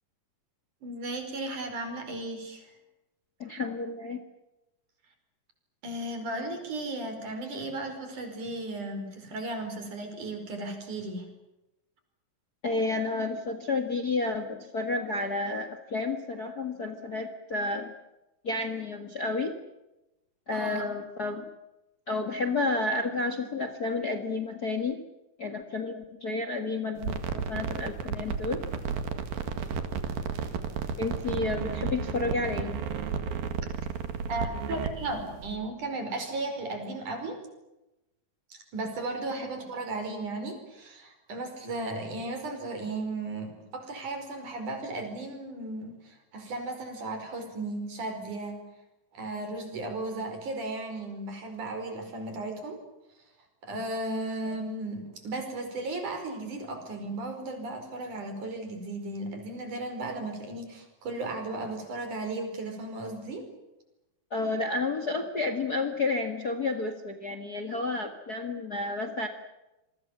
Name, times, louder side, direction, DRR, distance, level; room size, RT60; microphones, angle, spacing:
voice 1, 0.8-2.7 5.8-11.3 20.5-20.8 34.3-37.4 38.5-48.6 49.1-52.8 53.6-63.5, right 2 dB, 60° right, 6 dB, 6.5 m, -35 dB
voice 2, 3.4-4.2 12.6-17.9 18.4-19.5 20.5-21.5 22.1-25.0 25.4-28.6 31.0-32.8 39.4-39.5 64.3-69.3, left 3 dB, 35° left, 8 dB, 1.8 m, -31 dB
sound 1, 27.0-35.6, right 6 dB, 85° right, 3.8 m, -33 dB
27.5 x 23.5 x 7.4 m, 0.96 s
omnidirectional pair, 4.0 m